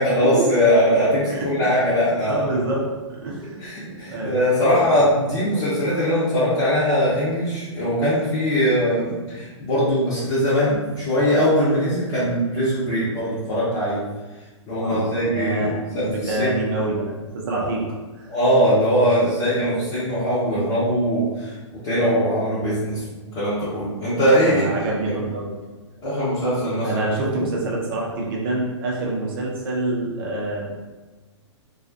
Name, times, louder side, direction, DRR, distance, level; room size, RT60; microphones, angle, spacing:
voice 1, 0.0-2.5 3.6-14.0 14.7-16.5 17.6-17.7 18.3-23.0 23.3-24.7 26.0-27.0, equal, 35° left, -12 dB, 0.9 m, -21 dB
voice 2, 1.0-1.7 2.2-2.8 3.2-4.3 4.7-5.0 14.8-17.8 18.2-18.3 24.4-25.5 26.8-30.8, right 2 dB, 45° right, -3 dB, 0.6 m, -27 dB
2.4 x 2.2 x 2.5 m, 1.2 s
figure-of-eight pair, 115°, 16 cm